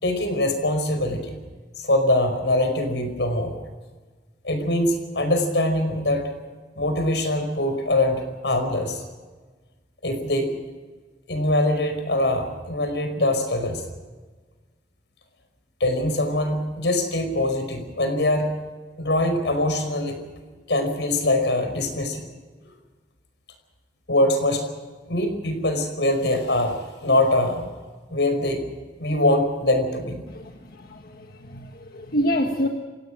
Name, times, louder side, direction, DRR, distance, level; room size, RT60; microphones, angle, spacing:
voice 1, 0.0-1.4 1.8-3.5 4.4-6.3 6.8-9.0 10.0-10.6 11.3-13.8 15.8-18.5 19.0-20.2 20.7-22.3 24.1-24.6 25.1-27.7 28.1-28.6 29.0-30.3, left 1 dB, 85° left, 7 dB, 5.2 m, -23 dB
voice 2, 31.5-32.7, equal, 55° left, 2 dB, 1.6 m, -25 dB
28.0 x 17.0 x 6.4 m, 1.3 s
head